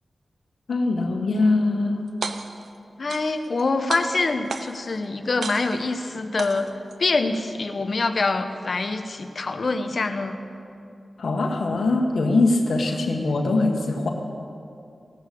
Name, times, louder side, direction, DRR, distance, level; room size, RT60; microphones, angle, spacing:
voice 1, 0.7-2.0 11.2-14.1, left 2 dB, 80° left, 2 dB, 1.6 m, -22 dB
sound 1, 2.1-2.7 3.1-3.6 3.9-4.9 5.4-6.0 6.4-7.0, right 4 dB, 85° right, 0.7 m, -33 dB
voice 2, 3.0-6.7 7.0-10.4, left 3 dB, 60° left, 8 dB, 1.0 m, -25 dB
17.5 x 6.6 x 8.4 m, 2.5 s
cardioid pair, 45°, 0 cm